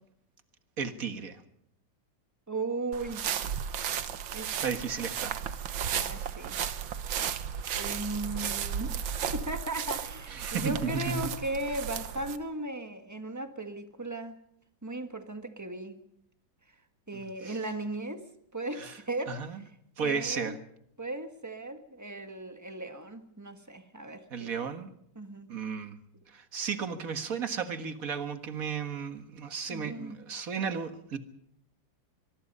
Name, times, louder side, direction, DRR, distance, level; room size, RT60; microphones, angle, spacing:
voice 1, 0.8-1.4 4.6-5.3 10.4-11.3 17.4-17.6 18.8-18.9 19.3-19.6 20.0-20.6 24.3-24.9 25.5-26.0 26.3-31.2, right 6 dB, 50° right, 9 dB, 1.9 m, -34 dB
voice 2, 2.5-3.3 4.3-4.5 5.9-6.6 7.8-9.0 9.3-14.4 14.8-16.0 17.1-19.7 20.0-20.6 21.0-24.7 25.1-25.5 29.7-30.2, right 2 dB, 10° right, 7 dB, 1.5 m, -37 dB
sound 1, 2.9-12.4, right 8 dB, 90° right, 1.9 m, -34 dB
23.5 x 22.5 x 5.5 m, 0.72 s
omnidirectional pair, 2.0 m